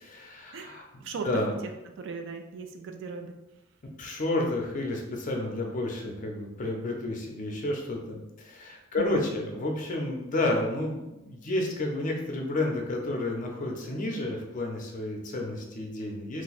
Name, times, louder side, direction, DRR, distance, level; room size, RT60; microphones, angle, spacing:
voice 1, 0.0-1.5 4.0-16.4, left 2 dB, 40° left, 1 dB, 0.5 m, -31 dB
voice 2, 0.5-1.3 2.0-3.3 9.0-9.1, right 5 dB, 60° right, 5 dB, 0.4 m, -38 dB
2.5 x 2.2 x 3.9 m, 0.98 s
head